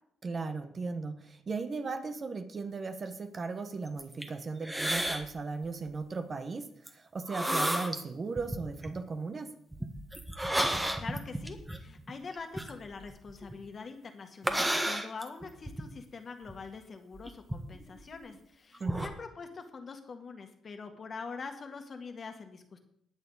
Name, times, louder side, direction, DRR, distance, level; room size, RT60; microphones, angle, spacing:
voice 1, 0.2-9.5 18.8-19.0, right 4 dB, 40° right, 8 dB, 1.1 m, -37 dB
sound 1, 3.9-4.3 4.6-5.3 5.6-5.9 6.9-7.0 7.3-8.0 8.4-8.9 9.7-13.6 14.4-15.8 16.5-16.6 17.1-18.4 18.7-19.1, right 1 dB, 10° right, 1.5 m, -32 dB
voice 2, 10.5-22.8, left 4 dB, 40° left, 5 dB, 1.7 m, -44 dB
20.0 x 7.1 x 4.1 m, 0.72 s
cardioid pair, 90°, 0 cm